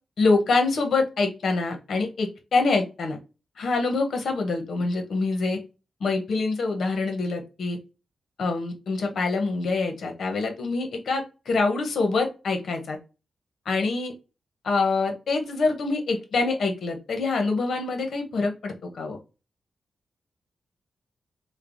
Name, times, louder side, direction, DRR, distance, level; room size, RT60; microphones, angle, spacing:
voice 1, 0.2-3.2 3.6-5.6 6.0-7.8 8.4-13.0 13.7-14.1 14.6-19.2, left 3 dB, 75° left, 4 dB, 0.7 m, -25 dB
3.2 x 2.0 x 2.5 m, 0.30 s
wide cardioid pair, 115°, 0 cm